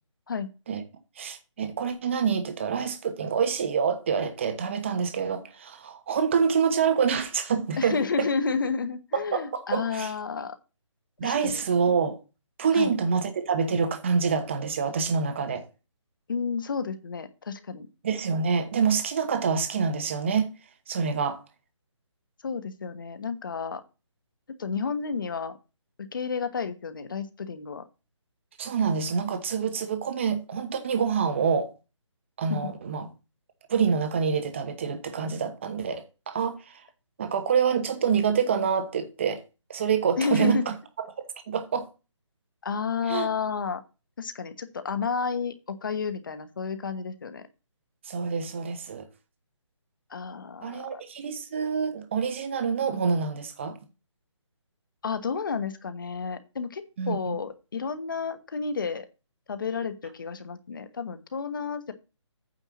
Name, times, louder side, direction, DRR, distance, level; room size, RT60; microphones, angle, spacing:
voice 1, 1.2-8.3 9.1-10.1 11.2-12.2 12.6-15.6 18.0-20.5 20.9-21.4 28.6-31.7 32.4-33.1 33.7-36.6 37.2-39.4 39.7-40.6 41.2-41.9 43.1-43.3 48.1-49.1 50.6-53.8 57.0-57.4, right 6 dB, 25° right, 1.1 m, -26 dB
voice 2, 7.8-10.6 11.2-11.6 12.7-12.9 16.3-17.9 22.4-23.8 24.6-25.6 26.0-27.9 32.5-32.6 40.2-40.6 42.6-43.8 44.2-47.4 50.1-51.0 55.0-59.1 59.5-61.9, left 5 dB, 45° left, 1.2 m, -31 dB
9.1 x 4.5 x 7.1 m
hypercardioid pair, 170°, 16 cm